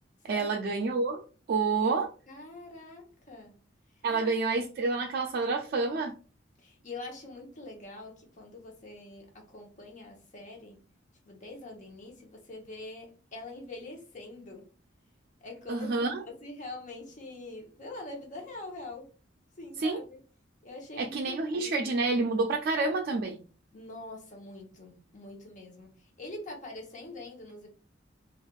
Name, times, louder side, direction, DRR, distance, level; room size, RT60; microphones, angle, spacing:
voice 1, 0.2-2.1 4.0-6.1 15.7-16.2 19.8-20.0 21.0-23.4, right 3 dB, 55° right, 0.3 m, -29 dB
voice 2, 2.3-3.6 4.1-4.3 6.6-10.8 11.3-14.7 15.4-19.1 19.6-20.2 20.6-21.9 23.7-27.7, left 2 dB, 45° left, 0.9 m, -44 dB
3.3 x 2.4 x 2.3 m
head